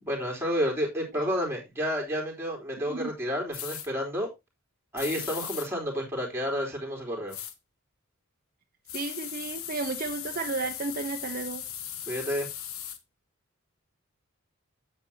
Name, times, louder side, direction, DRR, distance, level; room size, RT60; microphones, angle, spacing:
voice 1, 0.0-4.3 4.9-7.3 12.1-12.5, equal, 10° right, 3.5 m, -30 dB
sound 1, 3.5-3.9 5.0-5.7 7.3-7.5 8.9-13.0, left 10 dB, 85° left, 1.3 m, -38 dB
voice 2, 8.9-11.6, right 3 dB, 45° right, 0.8 m, -33 dB
9.3 x 8.4 x 2.7 m
head